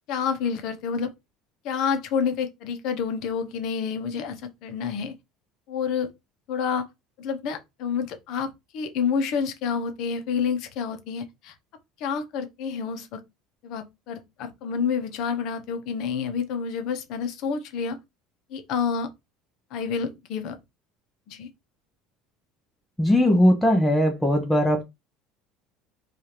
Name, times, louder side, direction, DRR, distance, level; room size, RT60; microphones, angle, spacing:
voice 1, 0.1-1.1 1.6-5.1 5.7-6.1 6.5-6.9 7.2-11.5 12.0-13.2 13.6-18.0 18.5-19.1 19.7-20.6 21.3-21.5, left 6 dB, 45° left, 0.7 m, -28 dB
voice 2, 23.0-24.8, equal, 5° left, 0.5 m, -19 dB
4.8 x 2.4 x 2.9 m
cardioid pair, 180°, 0 cm